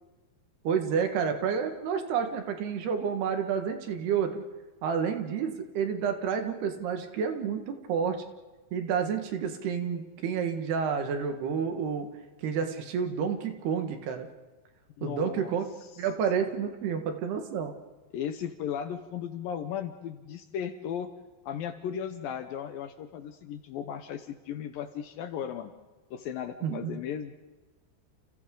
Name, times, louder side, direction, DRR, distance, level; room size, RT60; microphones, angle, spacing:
voice 1, 0.7-4.4 4.8-8.2 8.7-12.1 12.4-14.3 15.0-15.6 16.0-17.7 26.6-27.0, right 7 dB, 75° right, 5 dB, 3.7 m, -30 dB
voice 2, 15.0-15.5 18.1-21.1 21.4-25.7 26.1-27.3, left 8 dB, 75° left, 8 dB, 2.3 m, -36 dB
30.0 x 29.5 x 3.9 m, 1.2 s
omnidirectional pair, 4.8 m